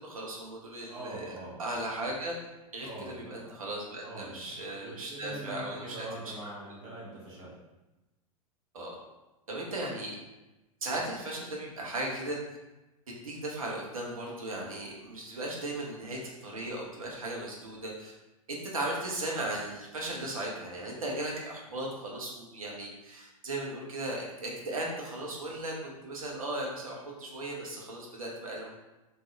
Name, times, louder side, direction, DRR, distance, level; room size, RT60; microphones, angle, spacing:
voice 1, 0.0-1.2 1.6-2.4 2.7-6.1 8.7-9.0 9.5-10.2 10.8-12.4 13.1-18.1 18.7-28.7, right 1 dB, 70° right, -2 dB, 0.9 m, -37 dB
voice 2, 0.9-1.6 2.8-3.5 4.0-7.5, right 1 dB, 35° right, -7 dB, 1.1 m, -43 dB
3.7 x 2.6 x 3.0 m, 1.0 s
figure-of-eight pair, 95°, 19 cm